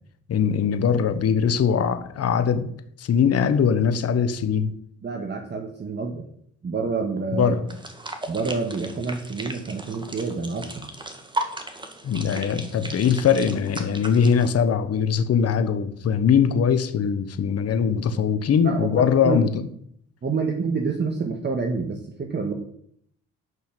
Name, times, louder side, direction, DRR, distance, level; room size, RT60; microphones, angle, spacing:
voice 1, 0.3-2.7 3.0-4.7 7.3-7.7 12.0-19.6, left 7 dB, 55° left, 10 dB, 1.1 m, -21 dB
voice 2, 5.0-6.2 6.6-7.6 8.3-10.9 18.6-19.4 20.2-22.5, right 4 dB, 35° right, 3 dB, 1.5 m, -28 dB
sound 1, 7.7-14.5, right 1 dB, 15° right, 1.9 m, -36 dB
11.0 x 5.6 x 7.7 m, 0.67 s
cardioid pair, 90°, 30 cm